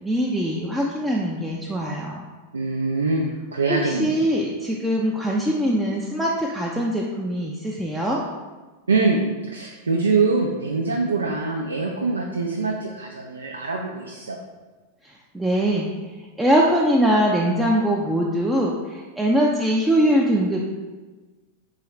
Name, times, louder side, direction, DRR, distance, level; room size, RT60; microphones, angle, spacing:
voice 1, 0.0-2.3 3.8-8.2 15.0-15.9 16.4-20.6, equal, 5° right, -4 dB, 0.4 m, -22 dB
voice 2, 2.5-4.2 8.9-14.4, right 3 dB, 75° right, 0 dB, 0.4 m, -24 dB
3.8 x 3.2 x 4.1 m, 1.3 s
figure-of-eight pair, 90°, 0 cm